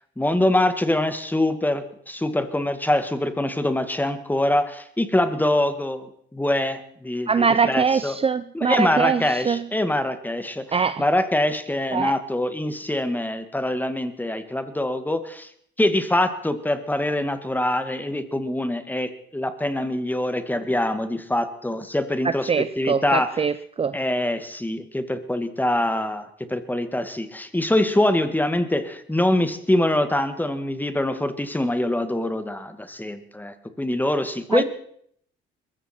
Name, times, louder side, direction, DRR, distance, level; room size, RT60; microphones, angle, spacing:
voice 1, 0.2-8.2 8.5-15.5 15.8-22.5 22.8-23.4 23.9-34.6, left 1 dB, 10° left, 10 dB, 1.8 m, -24 dB
voice 2, 7.3-9.6 10.7-11.0 11.9-12.1 22.5-23.9 34.5-34.6, right 6 dB, 30° right, 14 dB, 0.6 m, -23 dB
22.0 x 14.5 x 4.4 m, 0.66 s
cardioid pair, 90°, 20 cm